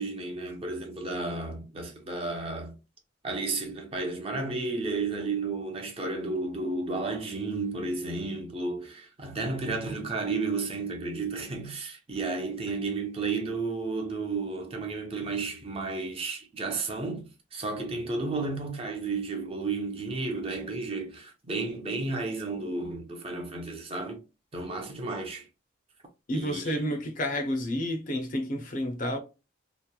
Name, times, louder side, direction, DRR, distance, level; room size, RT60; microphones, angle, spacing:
voice 1, 0.0-2.8 3.2-24.2 24.5-25.5 26.3-26.8, right 3 dB, 30° right, 0.5 m, -32 dB
voice 2, 26.3-29.2, equal, 45° left, 0.5 m, -30 dB
2.9 x 2.1 x 2.2 m
head